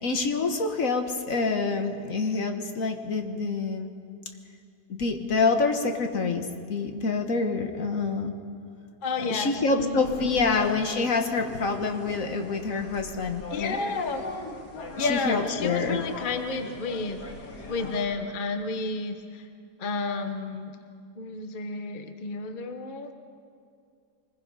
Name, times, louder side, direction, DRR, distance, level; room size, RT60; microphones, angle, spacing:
voice 1, 0.0-3.9 4.9-8.3 9.3-13.8 15.0-16.0, left 4 dB, 60° left, 5 dB, 1.6 m, -27 dB
voice 2, 9.0-10.5 13.5-14.3 15.0-17.2 17.7-19.5 19.8-20.8 21.2-23.1, left 3 dB, 35° left, 6 dB, 1.1 m, -31 dB
sound 1, 10.0-18.0, left 2 dB, 85° left, 2.6 m, -40 dB
23.5 x 20.5 x 5.5 m, 2.3 s
omnidirectional pair, 1.7 m